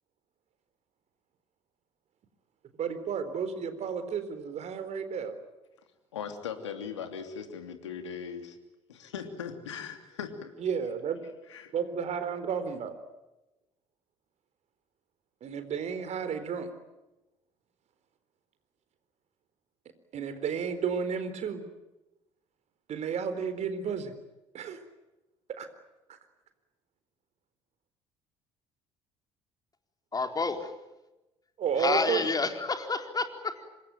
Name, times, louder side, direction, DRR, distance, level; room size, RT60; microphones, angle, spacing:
voice 1, 2.8-5.3 10.6-11.2 11.7-12.9 15.4-16.7 20.1-21.6 22.9-24.1 24.5-24.8 25.6-25.7 26.1-26.2 31.6-32.3, right 6 dB, 50° right, 10 dB, 4.0 m, -32 dB
voice 2, 6.1-8.6 8.9-10.5 11.5-11.7, left 7 dB, 80° left, 7 dB, 2.9 m, -39 dB
voice 3, 30.1-30.7 31.8-33.7, left 4 dB, 25° left, 6 dB, 4.2 m, -29 dB
26.5 x 22.0 x 9.1 m, 1.0 s
figure-of-eight pair, 55°, 15 cm